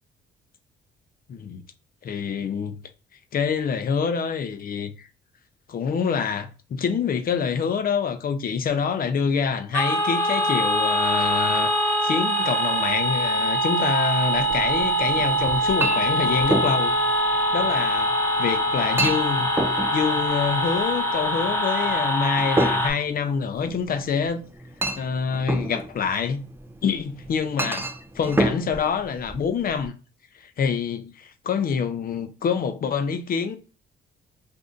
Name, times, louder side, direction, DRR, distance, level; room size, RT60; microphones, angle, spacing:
voice 1, 1.3-1.6 2.0-2.8 3.3-5.1 5.7-11.7 12.0-17.0 17.5-19.5 19.9-24.4 25.0-26.4 26.8-27.9 28.1-30.0 30.3-33.6, left 6 dB, 50° left, 0.5 m, -26 dB
sound 1, 9.7-22.9, equal, 10° left, 0.9 m, -23 dB
Chink clink, 14.3-29.9, right 1 dB, 10° right, 0.4 m, -31 dB
2.6 x 2.5 x 3.5 m
cardioid pair, 90°, 20 cm